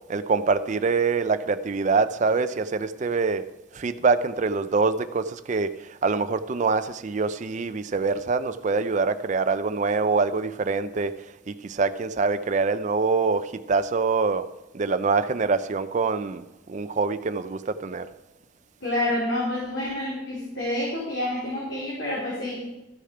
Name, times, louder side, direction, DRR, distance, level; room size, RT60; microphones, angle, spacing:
voice 1, 0.1-3.4 3.8-5.7 6.0-11.1 11.5-14.5 14.7-16.4 16.7-18.1, right 4 dB, 40° right, 0.4 m, -24 dB
voice 2, 18.8-22.6, left 1 dB, 60° left, 3.4 m, -28 dB
13.0 x 6.7 x 4.8 m
head